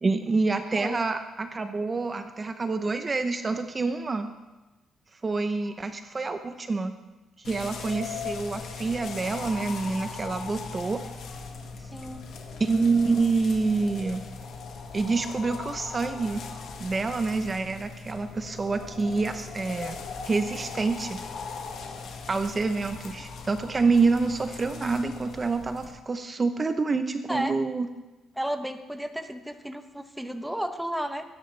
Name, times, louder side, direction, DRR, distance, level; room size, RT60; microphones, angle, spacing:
voice 1, 0.0-4.3 5.2-6.9 7.4-11.0 12.6-14.2 14.9-16.4 16.8-20.0 20.2-21.2 22.3-27.9, right 4 dB, 30° right, 8 dB, 0.8 m, -27 dB
sound 1, 7.4-25.9, left 5 dB, 70° left, 1.8 m, -39 dB
voice 2, 11.8-12.2 27.3-27.5 28.3-31.2, right 1 dB, 5° right, 8 dB, 1.0 m, -33 dB
20.5 x 10.0 x 3.3 m, 1.1 s
cardioid pair, 90°, 0 cm